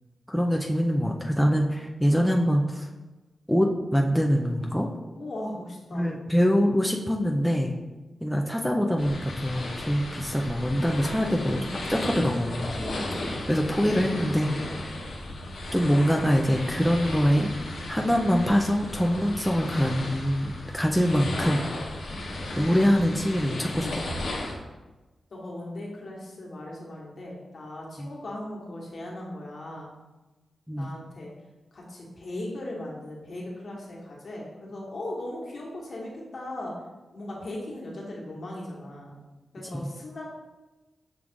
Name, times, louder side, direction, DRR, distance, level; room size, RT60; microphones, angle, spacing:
voice 1, 0.3-2.9 3.5-4.9 5.9-7.7 8.2-12.7 13.5-14.5 15.7-17.5 17.9-21.6 22.6-24.1 28.0-28.1 30.7-30.9 39.7-39.9, equal, ahead, 0 dB, 0.4 m, -24 dB
voice 2, 5.1-6.1 11.1-12.5 12.7-13.3 25.3-29.9 30.8-31.3 31.7-36.7 37.1-39.1 39.5-40.3, left 1 dB, 60° left, -3 dB, 1.2 m, -38 dB
sound 1, 9.0-24.5, left 1 dB, 80° left, 0.9 m, -35 dB
6.1 x 2.4 x 3.6 m, 1.1 s
wide cardioid pair, 90°, 0 cm